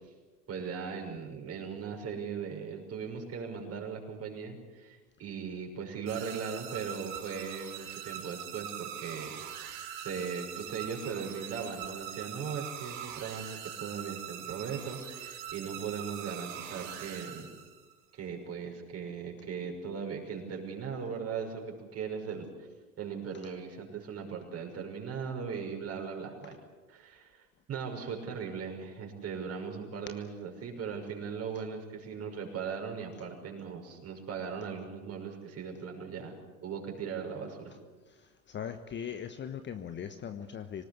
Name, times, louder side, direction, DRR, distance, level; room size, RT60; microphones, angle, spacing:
voice 1, 0.5-9.3 9.6-17.5 18.1-22.4 23.0-26.6 26.9-36.3 36.6-37.7, right 6 dB, 30° right, 2 dB, 6.3 m, -38 dB
sound 1, 6.1-17.9, right 9 dB, 55° right, 6.1 m, -42 dB
voice 2, 38.1-40.8, left 8 dB, 25° left, 9 dB, 1.2 m, -40 dB
26.0 x 19.0 x 8.2 m, 1.3 s
figure-of-eight pair, 85°, 46 cm